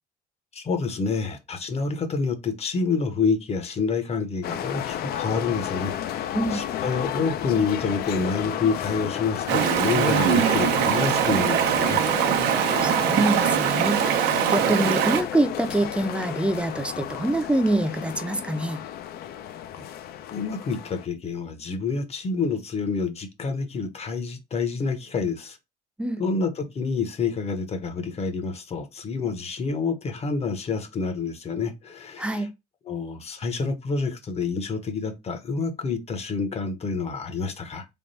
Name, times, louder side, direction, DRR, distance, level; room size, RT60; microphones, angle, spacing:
voice 1, 0.5-12.0 19.7-19.8 20.3-25.6 26.2-32.4 32.9-37.8, left 4 dB, 40° left, 0.8 m, -28 dB
sound 1, 4.4-21.1, left 10 dB, 65° left, 0.5 m, -32 dB
Stream, 9.5-15.2, right 10 dB, 80° right, 0.6 m, -22 dB
voice 2, 12.8-14.0 14.5-18.8 26.0-26.2 32.2-32.5, right 1 dB, 5° right, 0.5 m, -25 dB
3.5 x 2.3 x 4.0 m
cardioid pair, 110°, 17 cm